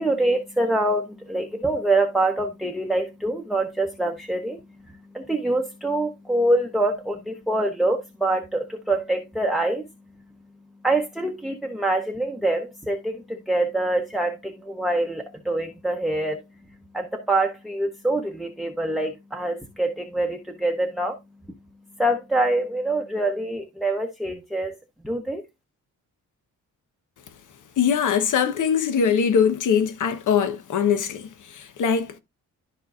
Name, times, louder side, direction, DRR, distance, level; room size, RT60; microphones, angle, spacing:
voice 1, 0.0-24.8 25.0-25.4, right 2 dB, ahead, 0.9 m, -25 dB
voice 2, 27.8-32.2, left 7 dB, 70° left, 1.1 m, -22 dB
13.0 x 4.5 x 2.5 m
cardioid pair, 105°, 32 cm